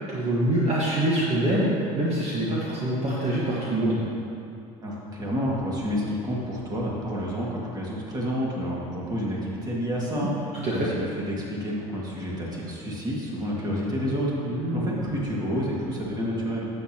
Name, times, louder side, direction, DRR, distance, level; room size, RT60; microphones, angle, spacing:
voice 1, 0.0-1.7 2.0-4.0 10.2-10.3 10.6-10.9 14.4-15.1, right 1 dB, 40° right, -7 dB, 1.6 m, -25 dB
voice 2, 4.8-16.7, equal, 20° right, -4 dB, 2.2 m, -29 dB
11.0 x 8.2 x 3.0 m, 2.6 s
supercardioid pair, 110°, 17 cm